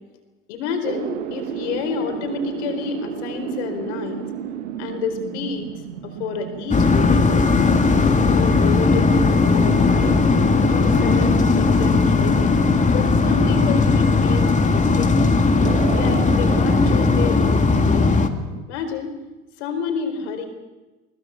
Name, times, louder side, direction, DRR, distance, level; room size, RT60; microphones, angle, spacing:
voice 1, 0.5-4.3 4.8-5.7 6.0-7.5 7.9-10.2 10.7-12.5 12.9-15.3 15.9-18.1 18.7-19.1 19.6-20.5, left 5 dB, 75° left, 6 dB, 4.6 m, -29 dB
sound 1, 0.8-18.6, right 9 dB, 80° right, 1.6 m, -33 dB
sound 2, 6.7-18.3, left 4 dB, 20° left, 2.3 m, -17 dB
22.5 x 20.0 x 7.2 m, 1.1 s
hypercardioid pair, 75°, 34 cm